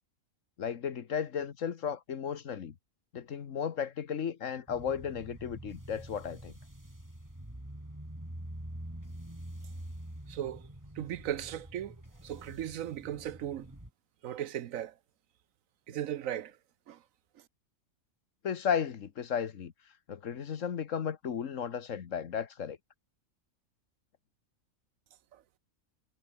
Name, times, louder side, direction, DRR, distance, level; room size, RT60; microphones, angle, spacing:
voice 1, 0.6-2.7 3.1-6.6 18.4-19.7 20.1-22.8, left 7 dB, 65° left, 1.5 m, -34 dB
sound 1, 4.7-13.9, right 1 dB, 15° right, 3.5 m, -46 dB
voice 2, 10.3-10.7 10.9-12.0 12.2-13.7 14.2-14.9 15.9-16.6 16.9-17.0 25.3-25.4, right 11 dB, 75° right, 1.1 m, -37 dB
omnidirectional pair, 1.5 m